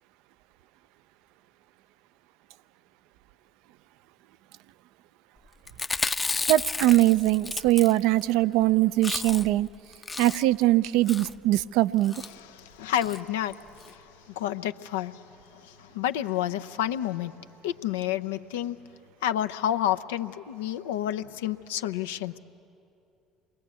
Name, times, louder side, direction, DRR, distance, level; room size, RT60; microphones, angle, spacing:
Chewing mastication, 5.7-8.3 8.6-8.7 8.9-9.6 9.9-10.6 11.1-11.4 12.0-12.3 13.0-13.2 13.5-13.6 13.8-13.9, left 3 dB, 25° left, 0.7 m, -32 dB
voice 1, 6.5-9.7 10.2-12.1, right 16 dB, 70° right, 14 dB, 0.5 m, -22 dB
voice 2, 12.3-15.2 15.5-17.3 17.6-18.8 19.2-22.4, left 11 dB, 80° left, 10 dB, 0.7 m, -30 dB
28.5 x 22.0 x 8.5 m, 2.6 s
hypercardioid pair, 60°, 0 cm